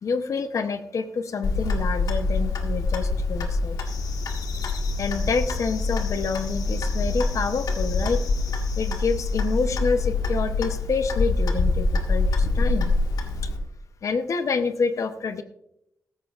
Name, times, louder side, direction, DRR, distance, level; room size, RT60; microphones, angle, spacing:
voice 1, 0.0-3.8 5.0-8.2 8.8-12.9 14.0-15.4, left 5 dB, 55° left, 9 dB, 0.7 m, -27 dB
Clock, 1.4-13.6, left 3 dB, 90° left, 1.6 m, -25 dB
sound 1, 3.8-9.7, left 5 dB, 75° left, 1.4 m, -41 dB
15.5 x 13.5 x 2.4 m, 0.80 s
wide cardioid pair, 145°, 6 cm